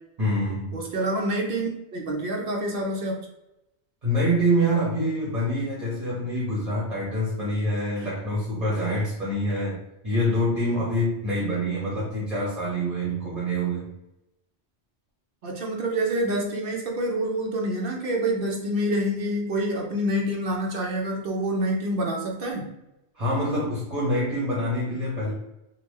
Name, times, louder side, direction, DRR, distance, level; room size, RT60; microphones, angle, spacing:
voice 1, 0.2-0.7 4.0-9.8 10.0-13.9 23.1-25.3, equal, 35° right, -6 dB, 1.1 m, -26 dB
voice 2, 0.7-3.3 8.7-8.8 15.4-22.7, right 1 dB, 55° right, 0 dB, 0.8 m, -27 dB
3.4 x 2.4 x 3.1 m, 0.90 s
omnidirectional pair, 1.2 m